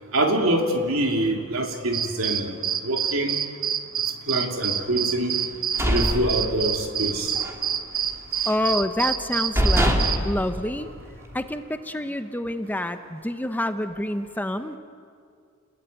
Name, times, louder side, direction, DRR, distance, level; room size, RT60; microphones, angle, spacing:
voice 1, 0.1-2.5 2.8-3.4 4.3-5.4 5.9-7.3 9.6-9.7, right 1 dB, 75° right, 3 dB, 3.2 m, -25 dB
sound 1, 1.9-10.2, right 8 dB, 45° right, 1.3 m, -27 dB
sound 2, 5.4-7.0 7.3-7.6 8.0-8.7 9.2-9.3 9.5-11.4, equal, 15° right, 2.7 m, -24 dB
voice 2, 8.5-10.9 11.3-14.8, left 1 dB, 10° left, 9 dB, 0.8 m, -27 dB
30.0 x 21.0 x 9.3 m, 2.3 s
head